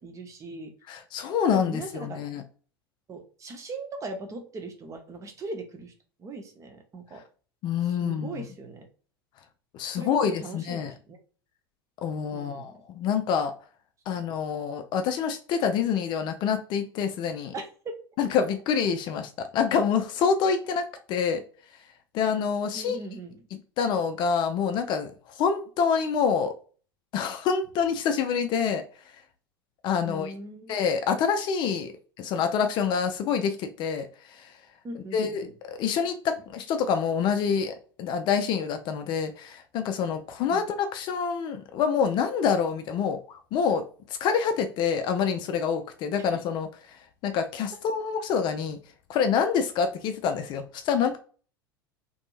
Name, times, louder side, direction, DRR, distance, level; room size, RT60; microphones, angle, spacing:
voice 1, 0.0-0.7 1.5-2.2 3.1-5.9 6.2-7.2 7.9-8.9 9.9-11.2 12.3-12.8 17.5-17.9 22.7-23.4 30.0-30.8 34.8-35.4 40.5-40.6 46.2-46.3, right 2 dB, 25° right, 0.6 m, -39 dB
voice 2, 0.9-2.4 7.6-8.4 9.7-10.9 12.0-13.5 14.1-17.5 18.2-21.4 22.1-23.0 23.8-25.1 25.4-26.5 27.1-28.8 29.8-30.3 30.7-34.1 35.1-43.8 44.2-46.7 47.2-48.8 49.1-51.2, left 6 dB, 40° left, 0.4 m, -26 dB
2.6 x 2.6 x 2.3 m
figure-of-eight pair, 80°, 13 cm